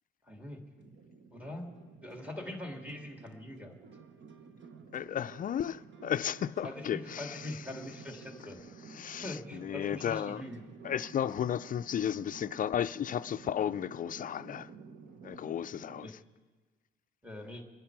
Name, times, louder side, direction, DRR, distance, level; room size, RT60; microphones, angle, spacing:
voice 1, 0.3-0.6 1.3-1.7 2.0-3.8 6.6-8.6 8.9-10.6 16.0-16.2 17.2-17.6, left 1 dB, 5° right, 2.4 m, -43 dB
sound 1, 0.8-16.1, right 5 dB, 65° right, 1.2 m, -52 dB
voice 2, 4.9-7.5 8.9-10.4 10.8-14.7 15.2-16.2, left 9 dB, 45° left, 0.4 m, -34 dB
25.0 x 10.0 x 4.7 m
cardioid pair, 90°, 20 cm